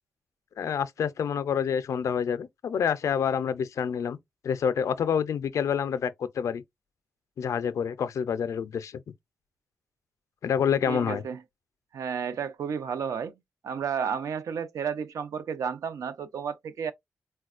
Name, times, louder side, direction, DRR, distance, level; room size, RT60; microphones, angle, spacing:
voice 1, 0.6-4.2 4.4-6.6 7.4-9.0 10.4-11.2, left 7 dB, 70° left, 0.4 m, -27 dB
voice 2, 10.9-11.4 11.9-13.3 13.6-16.9, right 7 dB, 80° right, 0.5 m, -32 dB
4.1 x 2.2 x 2.4 m
wide cardioid pair, 140°, 5 cm